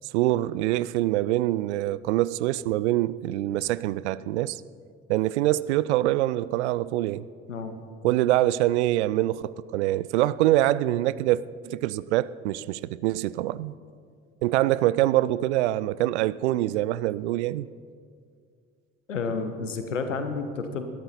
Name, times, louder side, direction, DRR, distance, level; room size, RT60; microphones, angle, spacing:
voice 1, 0.1-4.6 5.1-7.2 8.0-13.7 14.4-17.7, right 15 dB, 65° right, 0.5 m, -24 dB
voice 2, 19.1-20.9, left 4 dB, 80° left, 1.0 m, -30 dB
18.5 x 12.5 x 4.2 m
figure-of-eight pair, 60°, 37 cm